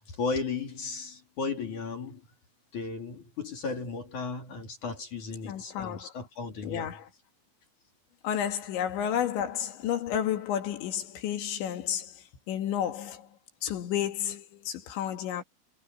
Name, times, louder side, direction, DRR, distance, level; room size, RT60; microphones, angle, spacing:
voice 1, 0.0-2.2 2.7-6.9, left 4 dB, 45° left, 4.2 m, -35 dB
voice 2, 5.5-6.1 6.6-7.1 8.2-13.3 13.6-15.4, left 10 dB, 70° left, 4.4 m, -31 dB
omnidirectional pair, 5.5 m